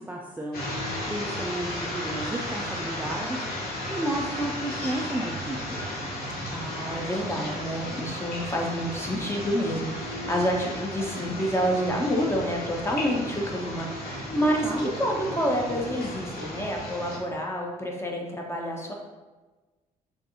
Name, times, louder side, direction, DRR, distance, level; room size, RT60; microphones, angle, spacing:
voice 1, 0.0-3.4 3.9-5.8 14.4-14.9, right 1 dB, 10° right, -1 dB, 0.5 m, -33 dB
sound 1, 0.5-17.2, left 1 dB, 55° left, 1.4 m, -34 dB
voice 2, 6.5-18.9, equal, 15° left, -1 dB, 1.1 m, -28 dB
5.2 x 3.6 x 2.7 m, 1.2 s
figure-of-eight pair, 40°, 19 cm